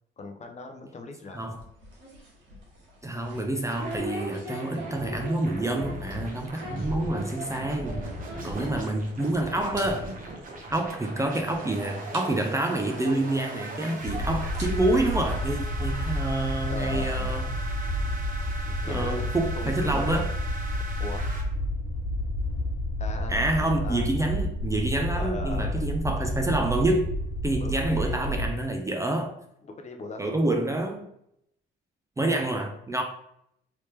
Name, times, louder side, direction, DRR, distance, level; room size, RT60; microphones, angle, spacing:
voice 1, 0.2-1.5 8.7-8.9 16.7-17.4 18.7-19.3 19.6-20.3 21.0-21.3 23.0-24.1 25.1-25.8 27.6-28.7 29.6-30.4, left 2 dB, 35° left, 4 dB, 0.6 m, -39 dB
sound 1, 1.3-9.3 9.5-9.8 10.1-10.3 11.0-11.1 11.6-11.7 12.1-12.2 13.6-13.7 14.4-15.8, right 1 dB, 80° right, 1.4 m, -41 dB
voice 2, 3.0-8.1 8.4-10.1 10.7-17.5 18.9-20.3 23.3-27.1 27.4-29.3 30.2-31.1 32.2-33.0, right 2 dB, 15° right, 3 dB, 0.4 m, -27 dB
sound 2, 3.7-21.4, right 1 dB, 45° right, 0.9 m, -39 dB
sound 3, 14.0-28.5, equal, 60° left, 1.3 m, -30 dB
3.2 x 2.8 x 3.1 m, 0.74 s
cardioid pair, 90°, 20 cm